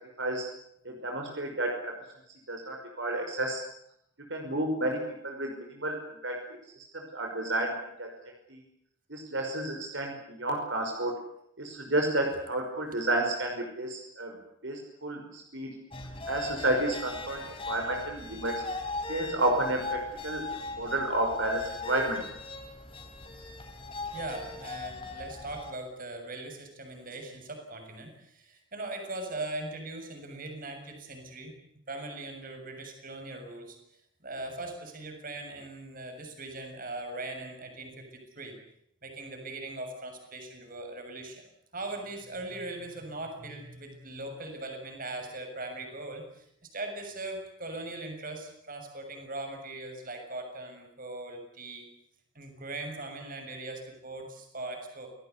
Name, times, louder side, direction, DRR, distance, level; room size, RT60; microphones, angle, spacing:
voice 1, 0.8-1.9 2.5-3.6 4.3-6.4 6.9-8.1 8.5-8.6 9.1-11.2 11.6-14.3 14.6-15.8 16.3-18.6 19.1-20.5 20.8-22.2, right 1 dB, 65° right, 2 dB, 5.6 m, -31 dB
sound 1, 15.9-25.7, left 2 dB, 25° left, 4.0 m, -39 dB
voice 2, 24.1-31.5 31.9-33.8 34.2-38.6 39.0-41.5 41.7-46.5 46.7-51.9 52.4-55.1, right 2 dB, 45° right, 4 dB, 7.0 m, -40 dB
28.0 x 19.0 x 8.4 m, 0.73 s
head